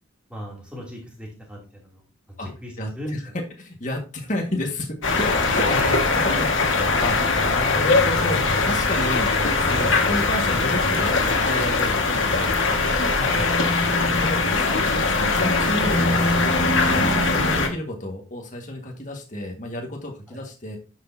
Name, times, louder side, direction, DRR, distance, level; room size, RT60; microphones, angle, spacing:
voice 1, 0.3-2.0 2.3-3.4 5.7-6.0 13.2-13.5 20.3-20.4, equal, 5° right, -3 dB, 2.9 m, -36 dB
voice 2, 2.8-5.7 6.4-7.2 7.4-12.6 14.0-16.3 16.9-20.8, left 1 dB, 40° left, 1 dB, 1.8 m, -31 dB
sound 1, 5.0-17.7, left 3 dB, 85° left, 1.8 m, -21 dB
10.5 x 6.5 x 2.8 m, 0.34 s
head